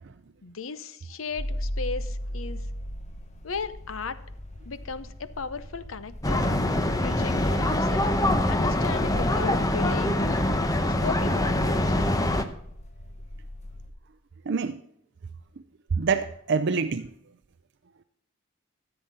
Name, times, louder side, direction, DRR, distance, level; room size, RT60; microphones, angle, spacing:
voice 1, 0.4-2.6 3.4-4.2 4.7-6.5 7.0-8.1 8.5-10.6 11.0-12.0, left 5 dB, 80° left, 14 dB, 0.8 m, -36 dB
sound 1, 1.4-13.9, equal, 35° left, 1.1 m, -38 dB
sound 2, 6.2-12.4, left 1 dB, 15° left, 0.8 m, -24 dB
voice 2, 14.5-14.8 15.9-17.1, right 5 dB, 60° right, 11 dB, 0.5 m, -26 dB
14.0 x 7.9 x 4.1 m, 0.72 s
head